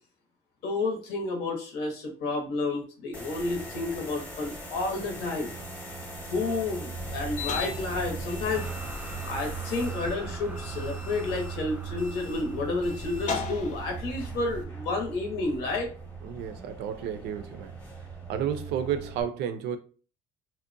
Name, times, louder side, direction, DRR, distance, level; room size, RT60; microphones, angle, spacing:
voice 1, 0.6-5.5 6.3-8.7 9.3-15.9, left 3 dB, 90° left, 0.8 m, -31 dB
sound 1, 3.1-19.2, right 4 dB, 10° left, 0.8 m, -39 dB
sound 2, 6.9-14.6, left 3 dB, 45° left, 0.5 m, -38 dB
sound 3, 8.5-14.5, right 2 dB, 10° right, 0.4 m, -46 dB
voice 2, 16.2-17.8 18.3-19.8, right 8 dB, 80° right, 0.4 m, -31 dB
2.6 x 2.1 x 2.5 m
cardioid pair, 110°, 17 cm